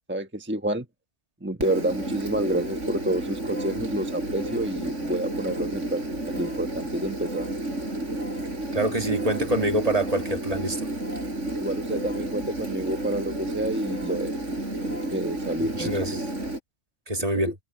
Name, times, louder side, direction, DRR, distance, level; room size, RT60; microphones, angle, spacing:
voice 1, 0.1-0.9 1.4-6.0 6.3-7.5 11.6-14.3 14.8-16.2 17.3-17.5, right 1 dB, 10° right, 1.1 m, -29 dB
Engine, 1.6-16.6, right 1 dB, 90° right, 6.0 m, -31 dB
voice 2, 8.7-10.9 15.6-16.2 17.1-17.5, right 1 dB, 30° right, 1.9 m, -26 dB
omnidirectional pair, 1.2 m